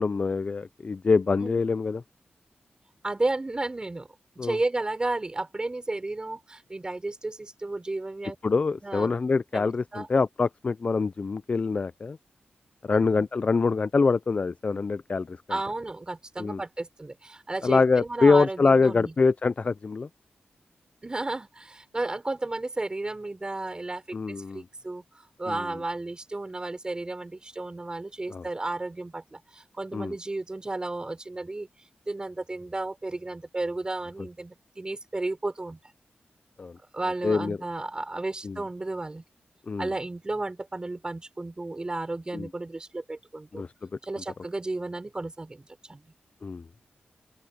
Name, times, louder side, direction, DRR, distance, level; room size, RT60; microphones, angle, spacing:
voice 1, 0.0-2.0 4.4-4.6 8.4-12.2 12.8-15.4 16.4-16.6 17.6-20.1 24.1-24.6 25.5-25.6 28.3-28.4 29.9-30.1 36.6-36.7 37.2-37.6 38.4-38.6 39.7-39.9 42.3-42.5 43.5-43.7 46.4-46.8, left 4 dB, 40° left, 0.4 m, -24 dB
voice 2, 3.0-4.1 4.3-8.4 8.8-9.1 9.5-10.1 12.9-13.2 15.5-19.1 21.0-25.0 25.4-31.7 32.1-35.8 36.9-39.2 39.8-43.6 44.0-46.0, right 2 dB, 25° right, 4.7 m, -33 dB
open air
wide cardioid pair, 110°, 3 cm